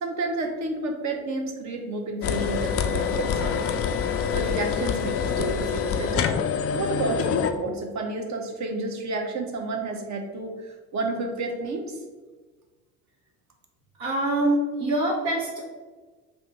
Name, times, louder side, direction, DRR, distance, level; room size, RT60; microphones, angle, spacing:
voice 1, 0.0-3.7 4.3-6.3 6.7-10.6 10.9-12.0, right 2 dB, 40° right, 3 dB, 0.9 m, -30 dB
sound 1, 2.2-7.5, left 7 dB, 35° left, 0.4 m, -26 dB
voice 2, 14.0-15.6, right 1 dB, 65° right, -5 dB, 1.2 m, -24 dB
3.6 x 2.6 x 4.6 m, 1.3 s
figure-of-eight pair, 50°, 45 cm